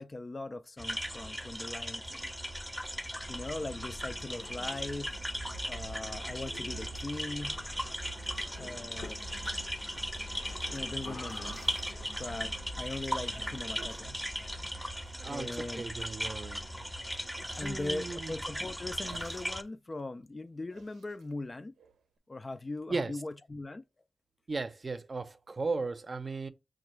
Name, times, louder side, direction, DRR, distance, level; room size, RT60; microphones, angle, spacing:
voice 1, 0.0-2.4 3.3-5.1 5.7-7.6 8.4-9.2 10.7-11.6 12.2-14.2 15.2-15.8 17.3-21.7 22.3-23.8, left 2 dB, 35° left, 0.4 m, -40 dB
sound 1, 0.8-19.6, equal, 5° left, 0.7 m, -38 dB
sound 2, 3.1-14.8, left 2 dB, 85° left, 0.9 m, -48 dB
sound 3, 11.0-12.9 13.2-14.1 15.0-15.2 15.7-16.1 17.3-17.8 19.0-19.7 19.9-20.0 20.7-22.2, right 5 dB, 90° right, 0.6 m, -53 dB
voice 2, 15.2-16.7 17.6-18.4 22.9-23.2 24.5-26.5, right 3 dB, 45° right, 0.6 m, -36 dB
6.1 x 2.4 x 3.0 m
cardioid pair, 50°, 0 cm